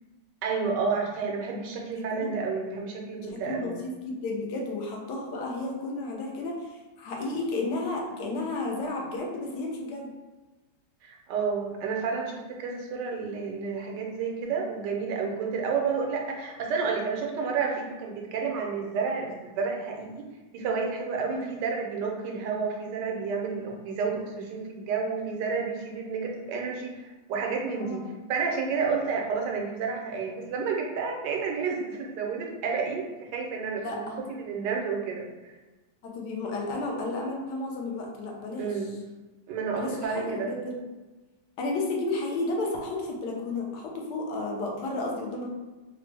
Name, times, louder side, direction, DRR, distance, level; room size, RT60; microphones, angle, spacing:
voice 1, 0.4-3.7 11.0-20.3 20.5-27.0 27.3-28.0 28.3-35.5 38.6-38.9 39.5-40.5, right 5 dB, 85° right, 0 dB, 1.2 m, -30 dB
voice 2, 3.2-10.1 21.3-21.5 27.8-28.0 33.8-34.2 36.0-38.9 39.8-40.7 41.6-45.5, left 2 dB, 80° left, -1 dB, 1.3 m, -32 dB
3.4 x 2.0 x 3.2 m, 1.2 s
omnidirectional pair, 1.8 m